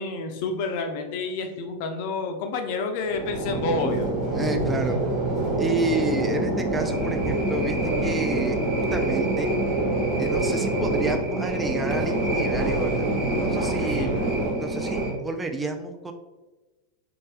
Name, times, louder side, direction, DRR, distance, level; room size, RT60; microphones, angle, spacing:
voice 1, 0.0-4.1 13.8-14.2, left 3 dB, 45° left, 6 dB, 0.5 m, -29 dB
sound 1, 3.0-15.1, right 2 dB, 45° right, 1.1 m, -25 dB
voice 2, 4.3-5.0 5.6-9.5 10.2-13.1 13.4-14.1 14.6-16.1, right 2 dB, 10° right, 5 dB, 0.3 m, -30 dB
4.3 x 3.2 x 2.3 m, 1.2 s
figure-of-eight pair, 90°, 0 cm